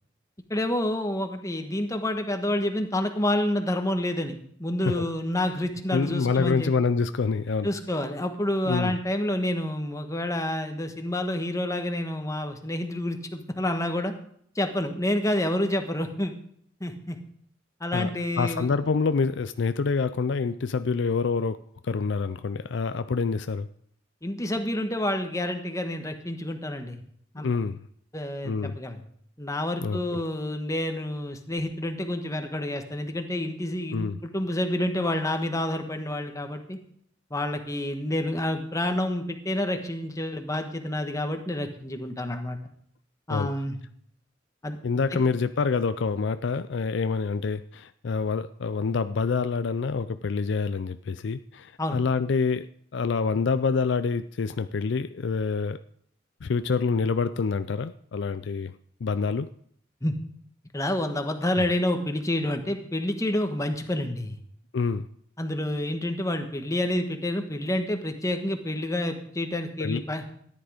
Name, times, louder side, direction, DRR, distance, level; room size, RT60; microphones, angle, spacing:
voice 1, 0.5-6.7 7.6-14.1 14.5-16.3 16.8-17.2 17.8-18.7 24.2-27.0 27.3-27.5 28.1-29.0 29.4-36.8 37.3-42.6 43.3-43.8 44.6-44.8 45.1-45.2 51.8-52.0 60.0-60.1 60.7-64.4 65.4-70.2, left 1 dB, 15° left, 6 dB, 1.3 m, -28 dB
voice 2, 5.9-7.7 8.6-9.0 17.9-18.1 18.4-21.6 21.8-23.7 27.4-27.8 28.4-28.8 29.8-30.2 33.9-34.2 43.3-43.5 44.8-55.8 56.4-58.7 59.0-59.5 64.7-65.1 69.8-70.0, left 4 dB, 65° left, 12 dB, 0.5 m, -26 dB
13.5 x 10.5 x 5.0 m, 0.65 s
head